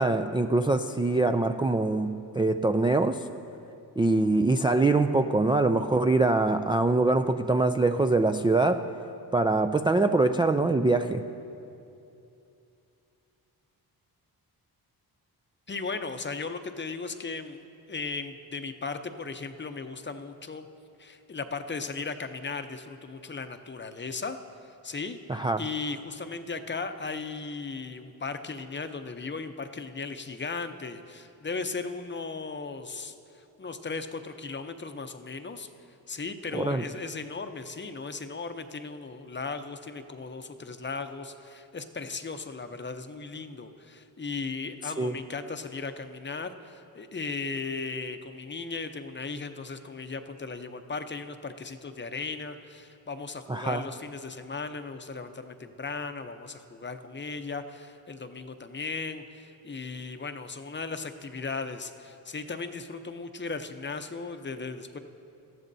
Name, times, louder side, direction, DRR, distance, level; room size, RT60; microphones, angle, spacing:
voice 1, 0.0-3.2 4.0-8.8 9.3-11.2 25.3-25.6 36.5-36.8 45.0-45.1 53.5-53.8, right 2 dB, 15° right, 6 dB, 0.3 m, -24 dB
voice 2, 15.7-17.6 17.9-20.7 21.0-24.4 24.6-35.7 36.1-65.0, left 4 dB, 30° left, 8 dB, 0.7 m, -37 dB
18.5 x 13.5 x 2.7 m, 2.7 s
cardioid pair, 80°, 39 cm